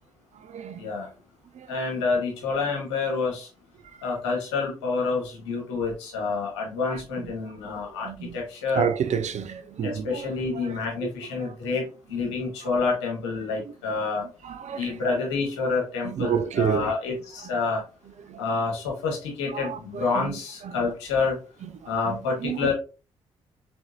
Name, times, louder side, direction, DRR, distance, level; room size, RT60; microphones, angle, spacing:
voice 1, 0.8-1.1 1.7-3.5 4.0-8.9 9.8-11.8 12.1-14.2 14.8-17.8 18.4-21.4 21.9-22.7, left 4 dB, 90° left, 1.4 m, -28 dB
voice 2, 8.0-8.4 8.8-10.7 11.0-11.1 11.4-11.5 14.4-14.9 16.0-16.9 18.3-18.4 19.5-20.3 22.1-22.7, right 8 dB, 55° right, 0.6 m, -29 dB
4.4 x 3.9 x 2.5 m
hypercardioid pair, 45°, 14 cm